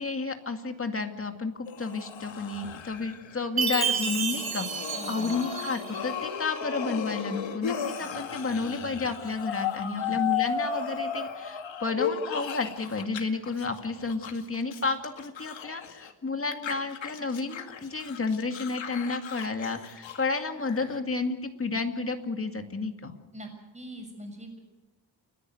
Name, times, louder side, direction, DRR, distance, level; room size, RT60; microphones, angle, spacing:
voice 1, 0.0-4.7 5.1-23.1, left 4 dB, 30° left, 6 dB, 2.2 m, -31 dB
sound 1, 1.7-13.2 13.5-16.1 16.5-21.0, left 7 dB, 75° left, 2.1 m, -35 dB
Chime, 3.6-6.1, right 6 dB, 50° right, 2.5 m, -30 dB
voice 2, 4.9-5.5 9.9-10.2 23.3-23.5 23.7-24.6, right 1 dB, 15° right, 3 dB, 6.7 m, -42 dB
29.5 x 11.0 x 9.5 m, 1.1 s
wide cardioid pair, 110°, 45 cm